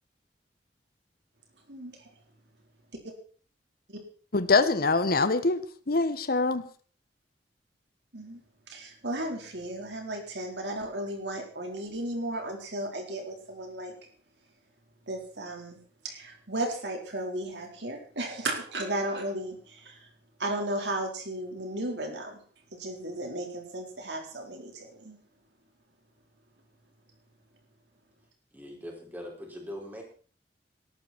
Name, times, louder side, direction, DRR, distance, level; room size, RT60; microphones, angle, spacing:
voice 1, 4.3-5.6 5.9-6.6, left 3 dB, 60° left, 13 dB, 1.0 m, -24 dB
voice 2, 8.7-13.9 15.1-20.0 20.4-22.4 22.7-25.2, right 1 dB, 80° right, 2 dB, 4.4 m, -35 dB
voice 3, 28.5-30.0, equal, 10° right, -1 dB, 5.6 m, -41 dB
17.5 x 12.5 x 4.5 m, 0.43 s
head